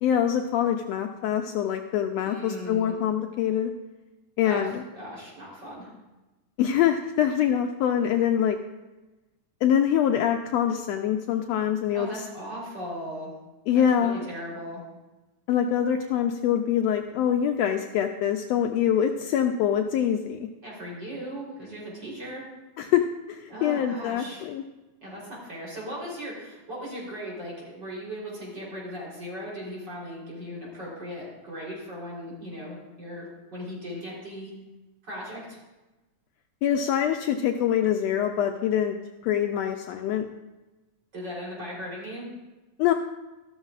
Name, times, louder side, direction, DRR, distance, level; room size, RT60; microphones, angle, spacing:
voice 1, 0.0-3.7 4.4-4.8 6.6-8.6 9.6-12.1 13.7-14.2 15.5-20.5 22.8-24.6 36.6-39.0 39.2-40.3 42.8-42.9, left 9 dB, 90° left, 5 dB, 1.4 m, -24 dB
voice 2, 2.2-3.0 4.4-5.9 11.9-13.3 13.7-14.8 20.6-22.4 23.5-24.5 25.0-34.5 35.0-35.6 41.1-42.3, equal, 35° right, -5 dB, 4.0 m, -38 dB
14.0 x 12.5 x 2.4 m, 1.1 s
omnidirectional pair, 3.5 m